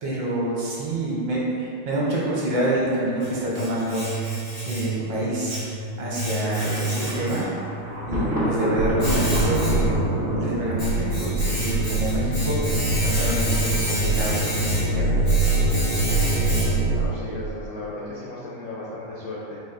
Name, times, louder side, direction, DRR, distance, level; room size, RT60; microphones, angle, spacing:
voice 1, 0.0-4.1 4.7-5.6 6.0-7.5 8.1-12.6 13.0-15.2, right 1 dB, 65° right, -6 dB, 1.4 m, -27 dB
Domestic sounds home sounds, 2.7-17.0, right 2 dB, 55° left, 0.3 m, -30 dB
Thunder, 6.5-12.3, equal, 45° right, 0.7 m, -30 dB
sound 1, 8.8-17.6, right 2 dB, 80° right, 0.9 m, -24 dB
voice 2, 16.9-19.6, left 2 dB, 80° left, -6 dB, 0.8 m, -35 dB
4.8 x 2.5 x 3.9 m, 2.5 s
omnidirectional pair, 2.4 m